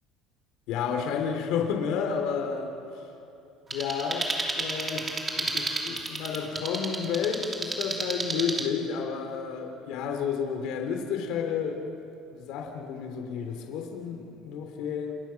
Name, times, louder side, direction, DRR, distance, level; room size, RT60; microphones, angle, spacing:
voice 1, 0.7-2.7 3.7-11.8 12.3-15.1, left 6 dB, 65° left, 3 dB, 3.2 m, -31 dB
sound 1, 3.7-8.7, right 3 dB, 20° right, 2.7 m, -32 dB
29.0 x 28.0 x 6.0 m, 2.9 s
cardioid pair, 140°, 0 cm